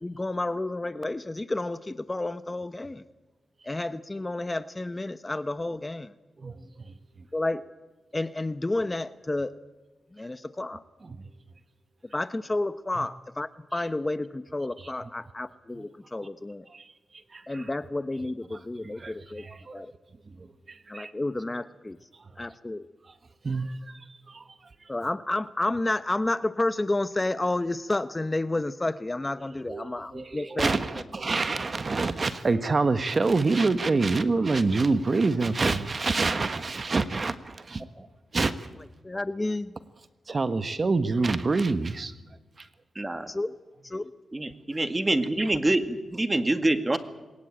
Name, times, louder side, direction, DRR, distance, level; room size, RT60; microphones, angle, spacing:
voice 1, 0.0-3.0 3.6-6.1 7.3-7.6 8.1-9.5 10.1-10.8 12.1-16.7 17.5-19.5 19.7-19.9 20.9-22.0 22.4-22.9 24.9-30.7 39.0-39.7 43.3-43.5 43.8-44.1, left 2 dB, 20° left, 14 dB, 0.9 m, -30 dB
voice 2, 17.3-17.7 18.5-18.6 19.0-19.8 20.4-21.1 23.1-23.2 23.4-24.4 29.7-37.8 38.3-38.7 40.3-42.1 42.6-42.7 44.7-44.8, right 3 dB, 45° right, 11 dB, 1.4 m, -27 dB
voice 3, 43.0-43.3 44.3-47.0, right 2 dB, 20° right, 9 dB, 2.2 m, -26 dB
22.5 x 19.5 x 8.9 m, 1.1 s
cardioid pair, 65°, 0 cm